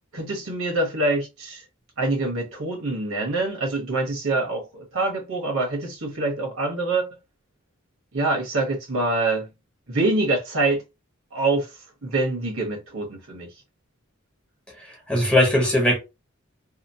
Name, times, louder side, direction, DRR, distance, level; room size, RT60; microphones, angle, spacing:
voice 1, 0.1-1.6 2.0-7.0 8.1-9.5 9.9-10.8 11.3-11.7 12.0-13.5, right 2 dB, 80° right, 1.1 m, -25 dB
voice 2, 14.8-16.0, left 1 dB, 5° left, 0.8 m, -20 dB
2.9 x 2.1 x 2.6 m
head